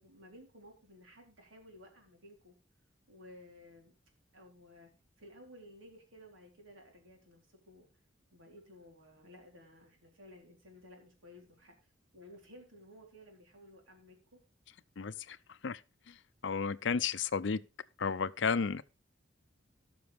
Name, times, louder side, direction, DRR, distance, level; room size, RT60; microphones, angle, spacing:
voice 1, 0.0-2.6 3.1-3.9 4.3-4.9 5.2-7.9 8.3-14.4, left 1 dB, 85° right, 4.1 m, -56 dB
voice 2, 15.0-15.4 15.6-15.8 16.1-16.2 16.4-17.6 18.0-18.8, left 5 dB, 65° left, 0.5 m, -32 dB
18.0 x 6.1 x 3.5 m
head